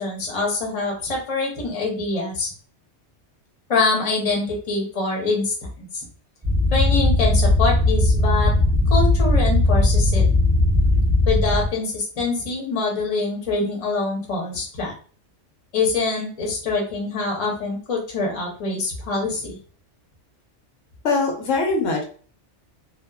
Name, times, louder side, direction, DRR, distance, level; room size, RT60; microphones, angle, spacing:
voice 1, 0.0-2.5 3.7-6.0 6.7-8.5 8.9-10.2 11.3-14.9 15.7-19.6, left 3 dB, 35° left, -1 dB, 0.7 m, -24 dB
sound 1, 6.4-11.7, left 2 dB, 20° right, 0.5 m, -18 dB
voice 2, 21.0-22.0, left 3 dB, 85° left, 2 dB, 1.1 m, -22 dB
2.8 x 2.0 x 2.2 m, 0.41 s
omnidirectional pair, 1.3 m